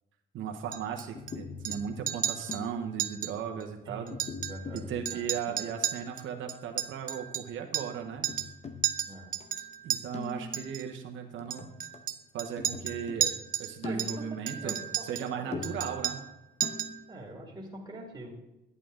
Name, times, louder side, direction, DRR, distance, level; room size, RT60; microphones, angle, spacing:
voice 1, 0.3-4.1 4.7-8.3 9.8-11.7 12.3-13.3 13.6-14.8 15.0-16.2, right 8 dB, 75° right, 4 dB, 1.1 m, -37 dB
Chink clink, 0.7-1.3 1.6-1.8 2.1-2.6 3.0-3.3 3.6-3.7 4.1-4.8 5.1-8.0 8.2-8.5 8.8-10.0 10.5-10.8 11.5-13.7 14.0-15.3 15.6-16.3 16.6-17.0, right 9 dB, 45° right, 0.6 m, -33 dB
sound 1, 1.1-3.0 4.1-5.8 8.1-9.6 10.1-10.8 11.4-12.1 12.6-14.6 15.5-17.1, left 4 dB, 35° left, 0.8 m, -43 dB
voice 2, 4.4-5.6 9.1-9.3 13.8-15.1 15.4-15.6 15.9-16.0 17.1-18.3, right 1 dB, 20° right, -1 dB, 2.2 m, -44 dB
11.0 x 8.5 x 3.8 m, 0.99 s
cardioid pair, 100°, 20 cm